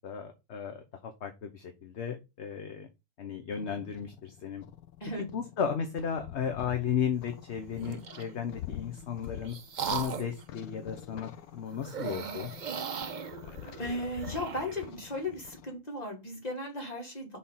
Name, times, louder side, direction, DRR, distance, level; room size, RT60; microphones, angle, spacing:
voice 1, 0.0-2.9 3.2-4.6 5.2-9.6 9.9-12.5, left 7 dB, 50° left, 6 dB, 1.1 m, -35 dB
sound 1, 3.5-15.7, left 12 dB, 80° left, 1.1 m, -46 dB
sound 2, 7.7-8.3 9.0-10.4 11.8-14.9, right 6 dB, 50° right, 0.5 m, -38 dB
voice 2, 13.8-17.4, left 1 dB, 25° left, 2 dB, 2.3 m, -36 dB
6.6 x 3.8 x 5.6 m, 0.24 s
omnidirectional pair, 1.6 m